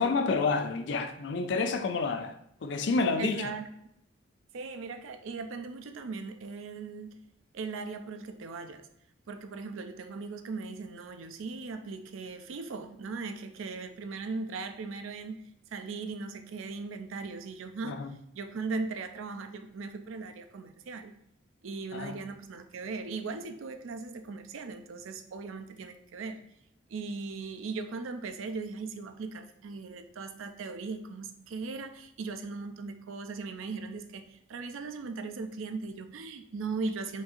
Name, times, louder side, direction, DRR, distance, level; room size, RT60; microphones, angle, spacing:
voice 1, 0.0-3.5 17.8-18.1 21.9-22.2, left 4 dB, 60° left, 0.4 m, -29 dB
voice 2, 3.2-3.7 4.5-7.2 7.5-8.9 9.3-18.0 18.3-21.1 21.6-26.4 26.9-37.2, right 4 dB, 80° right, 0.4 m, -38 dB
5.2 x 2.7 x 2.4 m
head